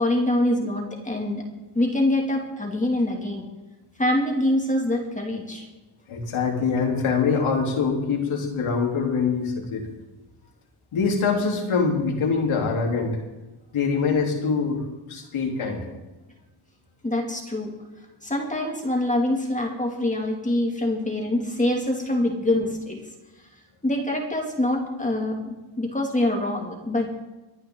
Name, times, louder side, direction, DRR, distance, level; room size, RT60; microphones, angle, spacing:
voice 1, 0.0-1.4 1.7-3.5 4.0-5.6 17.0-17.7 18.2-23.0 23.8-27.1, left 1 dB, 15° left, 0 dB, 2.5 m, -25 dB
voice 2, 6.1-9.8 10.9-13.2 13.7-14.8 15.1-15.8, left 5 dB, 75° left, 0 dB, 3.6 m, -24 dB
25.0 x 10.5 x 3.9 m, 1.1 s
cardioid pair, 110°, 49 cm